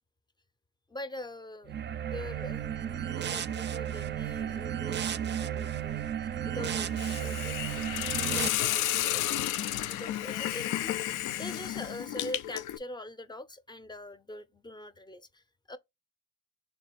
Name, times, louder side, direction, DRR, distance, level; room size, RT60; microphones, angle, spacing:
voice 1, 0.9-6.0 6.4-15.8, left 1 dB, 15° left, 0.6 m, -44 dB
sound 1, 1.7-8.5, right 9 dB, 40° right, 0.4 m, -33 dB
Hiss, 7.0-12.8, left 13 dB, 85° left, 0.5 m, -32 dB
3.3 x 3.0 x 4.4 m
cardioid pair, 90°, 30 cm